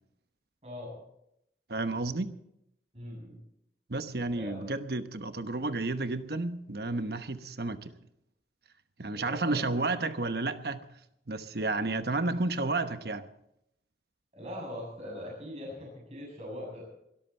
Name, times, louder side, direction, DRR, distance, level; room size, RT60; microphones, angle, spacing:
voice 1, 0.6-1.0 2.9-3.4 4.3-4.6 9.1-9.7 14.3-16.8, left 1 dB, 35° right, 7.5 m, -41 dB
voice 2, 1.7-2.3 3.9-7.9 9.0-10.8 11.3-13.3, right 2 dB, 65° right, 1.0 m, -31 dB
22.5 x 13.5 x 4.4 m
head